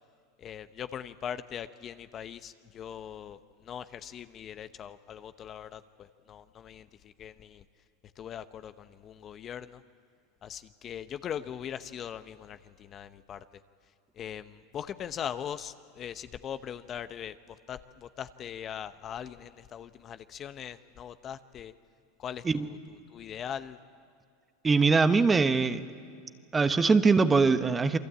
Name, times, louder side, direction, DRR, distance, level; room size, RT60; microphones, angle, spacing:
voice 1, 0.4-7.6 8.2-9.8 10.4-13.4 14.2-21.7 22.2-23.8, left 9 dB, 35° left, 0.9 m, -41 dB
voice 2, 24.6-25.8 26.5-28.0, right 4 dB, 20° right, 1.2 m, -22 dB
28.0 x 23.5 x 8.7 m
hypercardioid pair, 100°, 0 cm